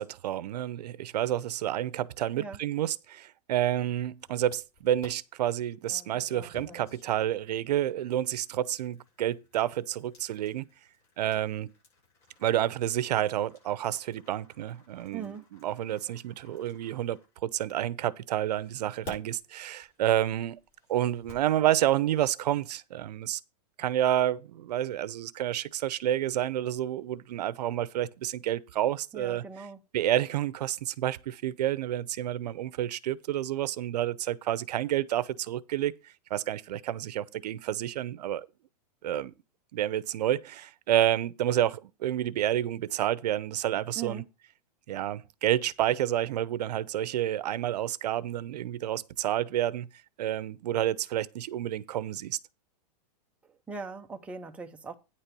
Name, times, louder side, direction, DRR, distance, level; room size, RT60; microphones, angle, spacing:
voice 1, 0.0-10.7 11.2-11.7 12.4-15.3 15.6-20.6 20.9-23.4 23.8-29.4 29.9-35.9 36.3-38.5 39.0-39.3 39.7-44.2 44.9-49.9 50.2-52.4, right 12 dB, 75° right, 0.7 m, -29 dB
sound 1, 4.2-5.1 5.8-17.8 18.5-21.5, left 4 dB, 40° left, 7.1 m, -53 dB
voice 2, 15.1-15.5 29.1-29.8 44.0-44.3 53.7-55.0, right 5 dB, 5° right, 0.6 m, -39 dB
9.7 x 4.4 x 6.8 m
supercardioid pair, 160°, 21 cm